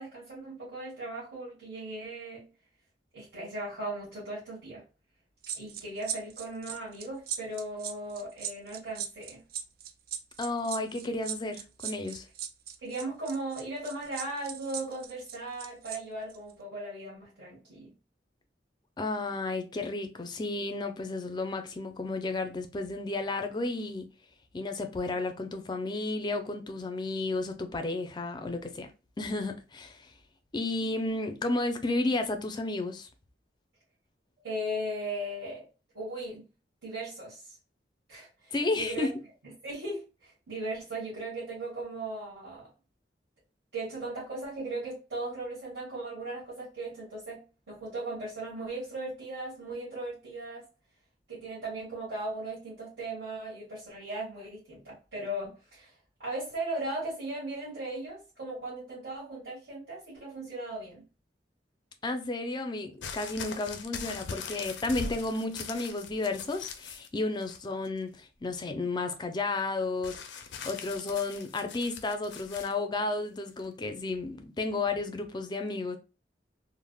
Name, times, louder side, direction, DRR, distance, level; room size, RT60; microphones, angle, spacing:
voice 1, 0.0-2.5 3.1-4.8 5.5-9.4 12.8-17.9 34.4-35.7 35.9-36.4 36.8-37.6 38.1-39.1 39.6-42.7 43.7-50.6 51.3-55.9 56.2-61.0, right 2 dB, 75° right, 1.5 m, -37 dB
sound 1, 5.4-16.0 16.3-16.5, right 9 dB, 55° right, 0.3 m, -38 dB
voice 2, 10.4-12.2 19.0-24.1 24.5-28.9 29.2-30.1 30.5-33.1 38.5-39.1 62.0-70.2 70.6-76.0, left 2 dB, 25° left, 0.4 m, -32 dB
sound 2, 63.0-67.1 67.4-68.0 70.0-72.7 73.6-73.7, left 5 dB, 85° left, 0.4 m, -41 dB
3.4 x 2.0 x 2.2 m
head